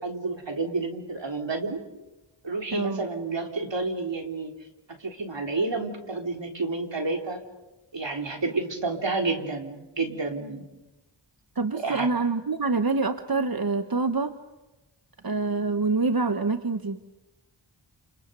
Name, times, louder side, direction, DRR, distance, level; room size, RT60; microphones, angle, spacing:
voice 1, 0.0-1.8 2.4-4.5 4.9-7.4 7.9-10.7 11.7-12.1, right 3 dB, 70° right, 3 dB, 3.6 m, -30 dB
voice 2, 2.7-3.0 11.5-14.4 15.2-17.0, right 3 dB, 50° right, 8 dB, 1.2 m, -26 dB
30.0 x 29.0 x 6.9 m, 1.0 s
wide cardioid pair, 70°, 46 cm